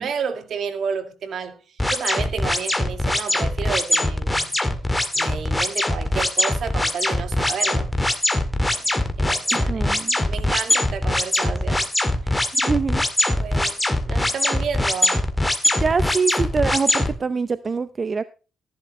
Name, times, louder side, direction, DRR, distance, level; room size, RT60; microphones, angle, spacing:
voice 1, 0.0-4.6 5.1-7.9 8.6-8.9 9.2-9.9 10.3-11.9 12.2-12.4 13.3-13.8 14.1-15.2, right 6 dB, 60° right, 2.0 m, -31 dB
sound 1, 1.8-17.1, left 1 dB, 10° left, 2.0 m, -21 dB
voice 2, 9.5-10.2 12.6-13.0 15.8-18.2, right 5 dB, 35° right, 0.6 m, -24 dB
14.5 x 11.0 x 3.2 m
cardioid pair, 90°, 0 cm